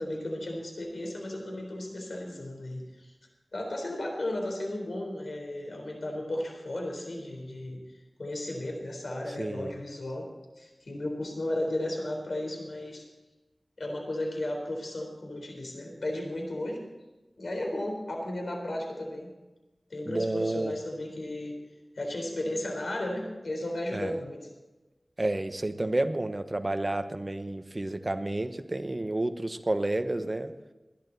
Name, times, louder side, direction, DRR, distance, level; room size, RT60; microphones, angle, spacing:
voice 1, 0.0-3.1 3.5-10.3 10.6-13.0 13.8-16.8 17.4-19.3 19.9-21.6 22.0-24.4, left 1 dB, 90° left, 1 dB, 4.1 m, -34 dB
voice 2, 9.4-9.7 20.1-20.7 23.9-24.2 25.2-30.5, right 2 dB, 35° right, 8 dB, 1.1 m, -30 dB
20.0 x 11.5 x 4.1 m, 1.1 s
wide cardioid pair, 60°, 0 cm